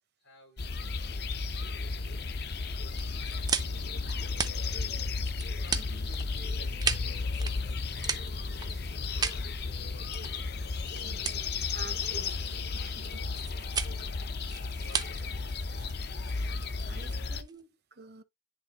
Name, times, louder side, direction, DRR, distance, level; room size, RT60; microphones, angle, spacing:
voice 1, 0.2-0.7 1.1-2.3 4.6-5.1 5.6-10.5 10.9-14.0 14.8-16.0, left 1 dB, 75° left, 4.5 m, -58 dB
sound 1, 0.6-17.4, left 4 dB, 50° left, 0.6 m, -34 dB
sound 2, 2.9-17.6, right 6 dB, 20° right, 0.5 m, -37 dB
voice 2, 5.7-6.1 11.0-12.3 12.7-13.1 16.8-18.2, right 3 dB, 55° right, 0.8 m, -49 dB
10.0 x 3.5 x 2.9 m
head